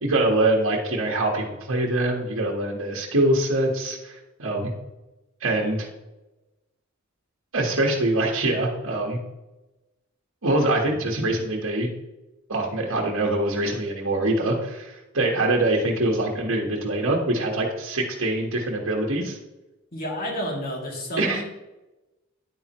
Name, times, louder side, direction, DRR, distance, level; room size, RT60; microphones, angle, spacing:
voice 1, 0.0-4.7 5.4-5.9 7.5-9.2 10.4-11.9 12.5-19.4 21.2-21.4, right 2 dB, 80° right, -1 dB, 1.4 m, -24 dB
voice 2, 19.9-21.4, equal, 45° left, -2 dB, 2.7 m, -30 dB
9.9 x 9.0 x 3.1 m, 1.0 s
head